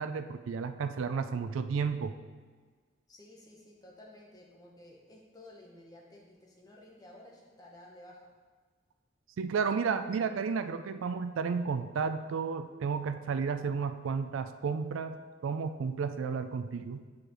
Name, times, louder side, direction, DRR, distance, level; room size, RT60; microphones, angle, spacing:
voice 1, 0.0-2.1 9.4-15.2 15.4-17.0, right 5 dB, 80° right, 9 dB, 0.4 m, -32 dB
voice 2, 3.1-8.3, left 1 dB, 20° left, -2 dB, 0.9 m, -54 dB
8.5 x 4.9 x 3.0 m, 1.5 s
head